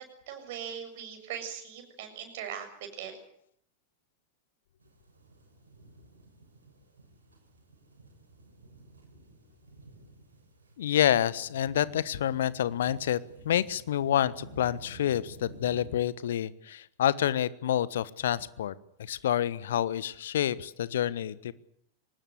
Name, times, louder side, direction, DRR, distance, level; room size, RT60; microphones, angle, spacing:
voice 1, 0.0-3.2, right 8 dB, 50° right, 6 dB, 7.0 m, -40 dB
sound 1, 4.8-15.9, right 2 dB, 75° right, 6.5 m, -51 dB
voice 2, 10.8-21.5, left 11 dB, 60° left, 18 dB, 1.2 m, -28 dB
24.0 x 20.0 x 8.3 m, 0.69 s
figure-of-eight pair, 90°, 0 cm